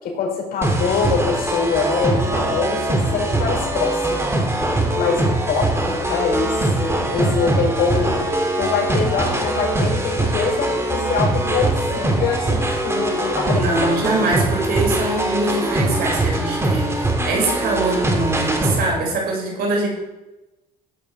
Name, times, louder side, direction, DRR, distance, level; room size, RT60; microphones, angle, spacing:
voice 1, 0.0-4.2 5.0-14.1, left 5 dB, 60° left, 0 dB, 5.3 m, -24 dB
sound 1, 0.6-18.9, right 1 dB, 15° right, 2.4 m, -22 dB
voice 2, 13.5-19.9, right 2 dB, 65° right, -1 dB, 5.3 m, -23 dB
16.0 x 8.2 x 4.5 m, 1.0 s
cardioid pair, 110°, 17 cm